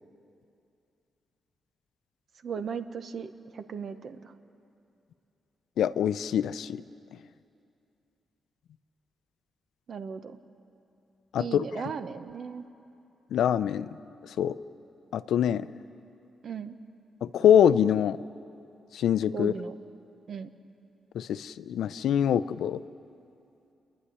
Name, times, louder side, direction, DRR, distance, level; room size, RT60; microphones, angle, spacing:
voice 1, 2.4-4.3 9.9-10.4 11.4-12.6 16.4-16.8 19.3-19.7 20.3-20.5, right 6 dB, 45° right, 10 dB, 0.8 m, -37 dB
voice 2, 5.8-6.8 11.3-11.6 13.3-13.9 14.4-14.6 15.1-15.7 17.2-18.2 18.9-19.5 21.1-22.8, left 9 dB, 90° left, 14 dB, 0.5 m, -24 dB
29.0 x 11.0 x 9.9 m, 2.7 s
wide cardioid pair, 175°, 0 cm